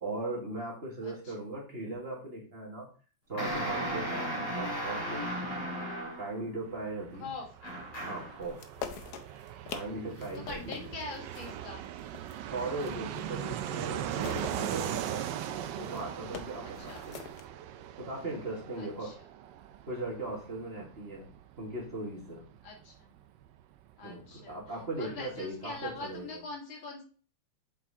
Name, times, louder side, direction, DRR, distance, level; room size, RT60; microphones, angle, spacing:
voice 1, 0.0-2.9 3.3-5.4 6.2-7.3 8.0-8.6 9.7-10.9 12.5-17.2 18.0-19.1 19.9-21.3 21.6-22.4 24.0-26.4, right 2 dB, 30° right, -2 dB, 1.9 m, -38 dB
sound 1, 3.4-6.4 7.6-8.4, right 1 dB, 45° left, 3.6 m, -35 dB
Fixed-wing aircraft airplane, 6.6-25.0 25.3-25.4 25.6-26.3, right 11 dB, 75° right, 1.2 m, -40 dB
sound 2, 8.4-13.3 13.7-17.5, left 7 dB, 65° left, 1.2 m, -45 dB
voice 2, 10.5-11.9 16.6-17.0 18.8-19.1 22.6-23.1 24.0-24.6 25.0-27.0, left 3 dB, 85° left, -1 dB, 2.6 m, -43 dB
7.1 x 4.6 x 3.6 m, 0.39 s
omnidirectional pair, 2.1 m